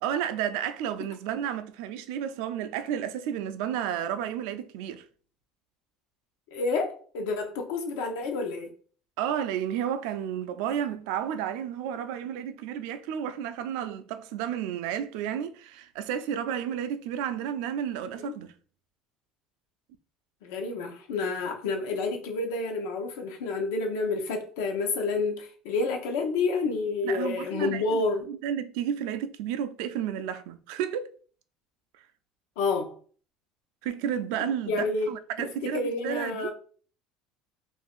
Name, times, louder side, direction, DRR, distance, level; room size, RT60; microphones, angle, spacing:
voice 1, 0.0-5.0 9.2-18.5 27.0-31.1 33.8-36.5, right 9 dB, 80° right, 0.3 m, -32 dB
voice 2, 6.5-8.7 18.2-18.3 20.4-28.3 32.6-32.9 34.4-35.1 35.6-36.5, left 3 dB, 90° left, 0.7 m, -29 dB
2.5 x 2.4 x 3.5 m
supercardioid pair, 125°, 0 cm